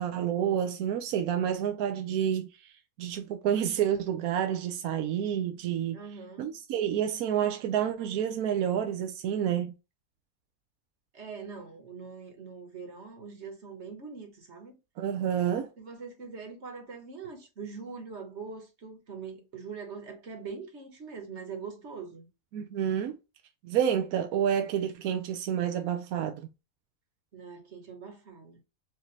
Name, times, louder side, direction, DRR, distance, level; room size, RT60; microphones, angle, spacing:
voice 1, 0.0-2.7 3.0-6.0 6.4-9.7 15.0-15.7 22.5-23.2 23.6-26.5, right 9 dB, 85° right, 1.1 m, -29 dB
voice 2, 5.9-6.6 11.1-14.8 15.8-22.3 27.3-28.6, right 5 dB, 50° right, 1.5 m, -43 dB
4.9 x 2.8 x 3.2 m
omnidirectional pair, 1.5 m